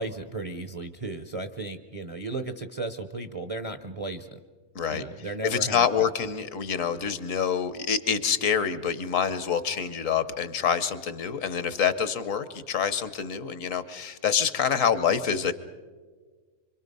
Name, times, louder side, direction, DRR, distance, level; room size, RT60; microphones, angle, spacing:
voice 1, 0.0-4.4 4.9-5.9, right 2 dB, 35° right, 8 dB, 0.6 m, -35 dB
voice 2, 5.4-15.5, left 7 dB, 65° left, 13 dB, 1.2 m, -26 dB
25.5 x 25.0 x 5.4 m, 1.5 s
omnidirectional pair, 1.5 m